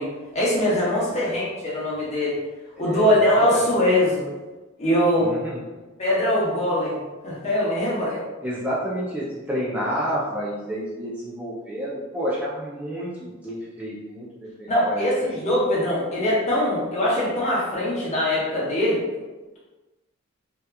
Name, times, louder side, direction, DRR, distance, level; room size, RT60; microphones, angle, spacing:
voice 1, 0.0-2.4 2.8-4.3 4.8-5.3 6.0-7.0 7.2-8.2 14.7-19.0, left 1 dB, 35° left, -6 dB, 0.7 m, -22 dB
voice 2, 0.9-1.3 2.7-3.7 5.2-5.6 8.0-15.1, equal, 5° right, -8 dB, 0.3 m, -30 dB
2.8 x 2.2 x 2.3 m, 1.2 s
head